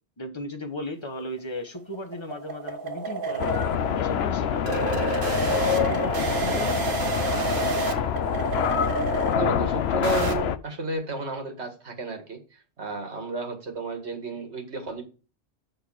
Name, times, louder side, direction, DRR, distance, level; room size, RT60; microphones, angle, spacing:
voice 1, 0.2-3.7 3.9-7.0, left 1 dB, 25° left, 6 dB, 1.1 m, -36 dB
sound 1, 1.4-10.4, right 4 dB, 55° right, 1.3 m, -30 dB
sound 2, 3.4-10.6, left 9 dB, 75° left, 0.8 m, -26 dB
voice 2, 9.3-15.0, right 3 dB, 85° right, 5 dB, 2.0 m, -32 dB
6.5 x 6.5 x 4.7 m, 0.34 s
omnidirectional pair, 1.1 m